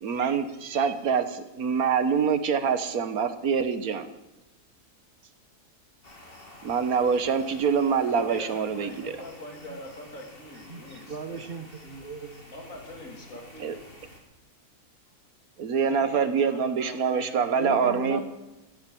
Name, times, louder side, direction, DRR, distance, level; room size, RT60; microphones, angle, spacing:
voice 1, 0.0-4.1 6.6-9.1 13.6-13.7 15.6-18.2, right 6 dB, 70° right, 10 dB, 1.6 m, -25 dB
sound 1, 6.0-14.2, left 1 dB, 35° left, 3.0 m, -50 dB
voice 2, 8.1-11.6 12.5-13.8 15.9-18.2, left 1 dB, 60° left, 1 dB, 3.4 m, -43 dB
voice 3, 10.7-12.4 17.6-18.2, right 2 dB, 40° right, 8 dB, 1.5 m, -36 dB
14.5 x 10.5 x 7.8 m, 1.0 s
omnidirectional pair, 1.6 m